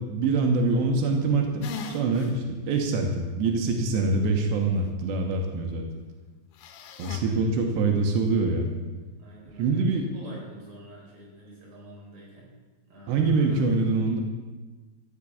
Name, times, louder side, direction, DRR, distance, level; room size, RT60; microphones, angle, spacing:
voice 1, 0.0-5.9 7.0-8.7 9.6-10.1 13.1-14.2, right 3 dB, 90° right, 2 dB, 3.4 m, -24 dB
sound 1, 1.6-2.3 2.8-2.9 6.6-7.2, left 5 dB, 70° left, 2.5 m, -38 dB
voice 2, 7.0-7.5 9.2-9.9 10.1-12.5 12.8-13.9, right 1 dB, 40° right, -4 dB, 4.9 m, -47 dB
14.0 x 6.6 x 8.4 m, 1.3 s
omnidirectional pair, 4.9 m